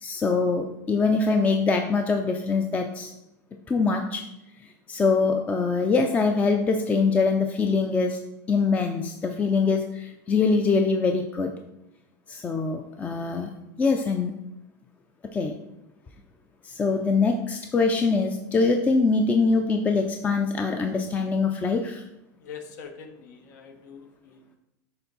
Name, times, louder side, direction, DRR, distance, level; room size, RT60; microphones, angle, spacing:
voice 1, 0.0-3.1 3.7-4.3 4.9-8.2 8.5-11.5 12.3-13.5 13.8-14.3 15.3-15.5 16.6-22.0, left 4 dB, 15° left, 5 dB, 0.4 m, -23 dB
voice 2, 22.4-24.6, left 6 dB, 75° left, 5 dB, 1.1 m, -44 dB
6.9 x 3.6 x 4.0 m, 0.89 s
supercardioid pair, 140°, 10 cm